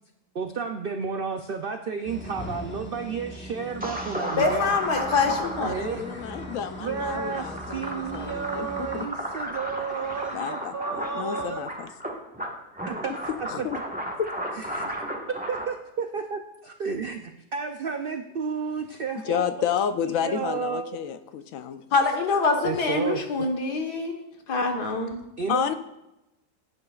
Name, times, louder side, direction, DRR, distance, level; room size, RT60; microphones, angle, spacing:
voice 1, 0.3-4.7 5.6-6.3 6.8-11.6 12.8-13.1 13.6-13.7 14.5-19.7 20.2-21.0 22.6-23.5 25.4-25.7, right 6 dB, 80° right, 6 dB, 0.5 m, -32 dB
sound 1, 2.0-9.1, equal, 10° left, 0.6 m, -41 dB
sound 2, 3.8-15.7, equal, 5° right, 1.2 m, -34 dB
voice 2, 4.4-5.7 21.9-24.2 24.5-25.2, left 4 dB, 90° left, 3 dB, 1.9 m, -25 dB
voice 3, 5.4-8.9 10.3-11.9 13.5-13.8 14.2-14.3 19.2-21.8 25.5-25.7, left 8 dB, 65° left, 10 dB, 1.0 m, -30 dB
15.5 x 9.6 x 2.4 m, 0.91 s
omnidirectional pair, 1.7 m